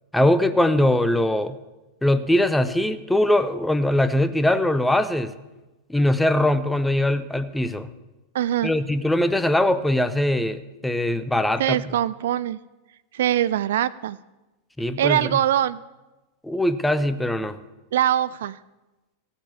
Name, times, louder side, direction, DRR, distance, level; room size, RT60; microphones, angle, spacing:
voice 1, 0.1-1.6 2.0-5.3 5.9-7.9 8.6-11.8 14.8-15.4 16.4-17.6, left 1 dB, 5° left, 11 dB, 0.7 m, -21 dB
voice 2, 8.3-8.7 11.6-12.6 13.1-14.2 15.0-15.8 17.9-18.6, right 11 dB, 60° right, 18 dB, 0.3 m, -22 dB
15.5 x 7.3 x 7.2 m, 1.1 s
figure-of-eight pair, 90°, 0 cm